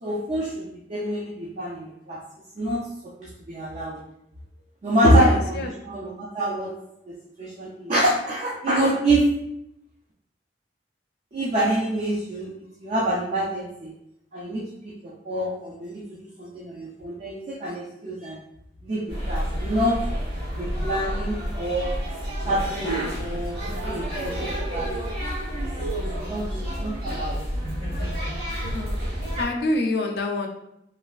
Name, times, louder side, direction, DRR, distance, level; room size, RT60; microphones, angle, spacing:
voice 1, 0.0-2.2 2.6-2.8 3.2-4.0 4.8-6.7 7.1-9.3 11.3-12.5 12.8-14.0 14.3-16.0 16.4-18.4 18.8-20.0 20.6-22.0 22.4-23.6 23.8-24.9 26.2-26.4 26.8-27.4, right 1 dB, 40° right, -4 dB, 0.4 m, -26 dB
voice 2, 5.1-5.7 23.2-23.4 24.2-24.3 28.6-28.9 29.4-30.5, left 2 dB, 65° left, 3 dB, 0.4 m, -27 dB
sound 1, 19.1-29.5, equal, 55° right, 1.2 m, -29 dB
3.1 x 2.3 x 2.3 m, 0.81 s
head